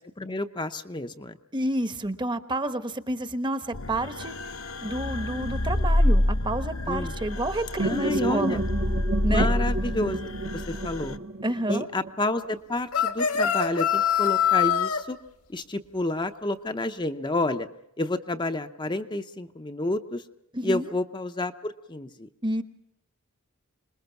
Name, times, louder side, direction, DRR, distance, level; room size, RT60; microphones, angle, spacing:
voice 1, 0.2-1.4 6.9-7.1 7.8-8.6 9.3-10.2 10.5-11.2 11.7-15.2 15.5-17.7 18.0-20.2 20.6-22.3, left 2 dB, 20° left, 7 dB, 0.7 m, -29 dB
voice 2, 1.5-4.5 4.8-8.6 9.2-9.5 11.4-11.9 20.5-20.9 22.4-22.6, right 1 dB, 20° right, 11 dB, 1.1 m, -29 dB
sound 1, 3.7-11.2, left 1 dB, 65° left, 1.1 m, -27 dB
sound 2, 7.8-12.6, right 2 dB, 45° right, 1.0 m, -31 dB
sound 3, 12.9-15.0, left 8 dB, 90° left, 2.3 m, -23 dB
27.0 x 21.0 x 5.9 m, 0.82 s
head